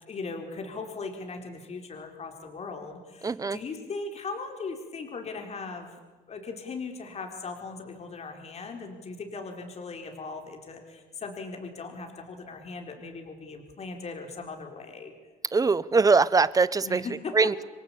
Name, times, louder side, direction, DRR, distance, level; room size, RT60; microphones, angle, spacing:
voice 1, 0.1-6.0 6.3-15.1 16.8-17.6, left 4 dB, 40° left, 4 dB, 4.3 m, -38 dB
voice 2, 3.2-3.6 15.5-17.0 17.3-17.6, right 4 dB, 20° right, 17 dB, 1.0 m, -22 dB
28.0 x 23.0 x 8.7 m, 1.3 s
cardioid pair, 110°, 17 cm